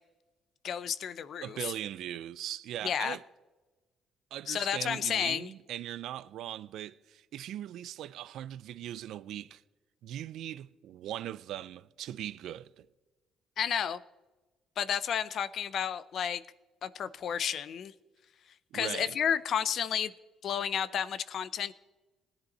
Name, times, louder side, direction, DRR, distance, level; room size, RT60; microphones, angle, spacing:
voice 1, 0.6-1.7 2.8-3.2 4.5-5.5 13.6-14.0 14.8-16.4 16.8-17.9 18.7-20.1 20.4-21.7, left 8 dB, 60° left, 0.6 m, -31 dB
voice 2, 1.4-3.2 4.3-9.6 10.0-12.9 18.7-19.2, right 12 dB, 75° right, 0.4 m, -40 dB
17.5 x 10.5 x 4.2 m
cardioid pair, 80°, 0 cm